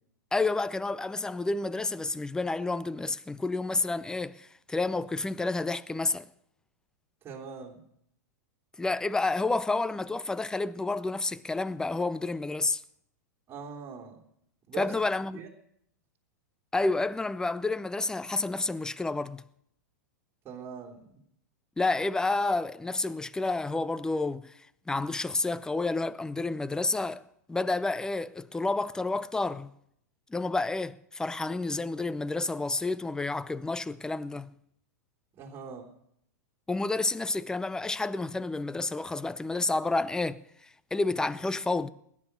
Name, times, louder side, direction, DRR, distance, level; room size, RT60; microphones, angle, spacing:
voice 1, 0.3-6.3 8.8-12.8 14.8-15.4 16.7-19.4 21.8-24.5 24.9-27.2 27.5-29.7 30.3-34.5 36.7-40.4 40.9-41.9, left 3 dB, 5° left, 0.5 m, -30 dB
voice 2, 7.2-7.8 13.5-14.2 14.7-14.9 15.3-15.5 20.4-21.0 35.4-35.9, right 6 dB, 25° right, 3.2 m, -41 dB
19.5 x 9.8 x 6.7 m
figure-of-eight pair, 100°, 10 cm